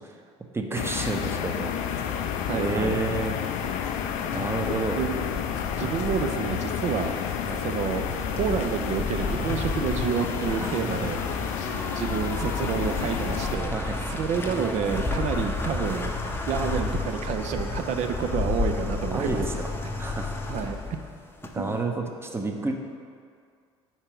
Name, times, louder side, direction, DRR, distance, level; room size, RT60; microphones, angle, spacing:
voice 1, 0.5-2.3 2.5-3.3 4.3-5.0 7.4-7.6 10.6-10.9 12.6-12.9 13.7-13.9 19.1-19.7 20.0-20.3 21.5-22.7, right 3 dB, 15° right, 3 dB, 0.7 m, -30 dB
sound 1, 0.8-13.6, left 8 dB, 60° left, 0.5 m, -30 dB
voice 2, 2.5-3.0 5.0-5.2 5.7-7.2 7.6-8.0 8.3-11.2 11.9-13.8 14.1-19.4 20.5-20.8 21.6-21.7, right 7 dB, 55° right, 6 dB, 0.5 m, -29 dB
sound 2, 3.6-21.8, left 3 dB, 15° left, 0.7 m, -32 dB
4.5 x 4.3 x 5.3 m, 2.2 s
hypercardioid pair, 65°, 15 cm